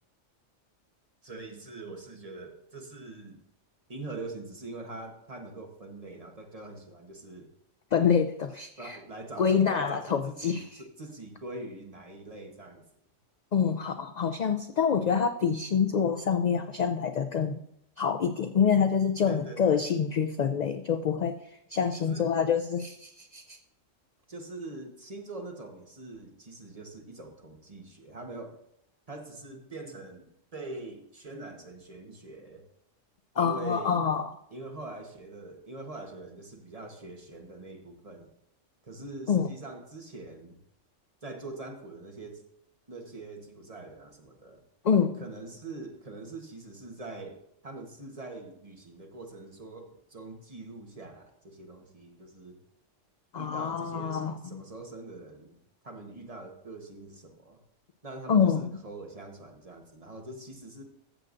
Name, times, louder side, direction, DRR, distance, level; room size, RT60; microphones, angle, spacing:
voice 1, 1.2-3.4 3.9-7.5 8.8-12.8 19.3-19.9 22.0-22.3 24.3-28.5 29.1-30.2 30.5-32.6 33.3-34.0 34.5-38.3 38.8-40.6 41.2-42.4 42.9-44.6 45.2-47.4 47.6-52.6 53.4-55.6 55.8-57.6 58.0-60.8, right 2 dB, 30° right, 2 dB, 1.3 m, -43 dB
voice 2, 7.9-9.0 9.4-10.8 13.5-17.6 18.0-21.4 21.7-23.6 33.4-34.3 39.3-39.5 44.8-45.2 53.3-54.3 58.3-58.7, left 7 dB, 70° left, 9 dB, 0.4 m, -26 dB
14.0 x 7.8 x 2.6 m, 0.75 s
omnidirectional pair, 1.3 m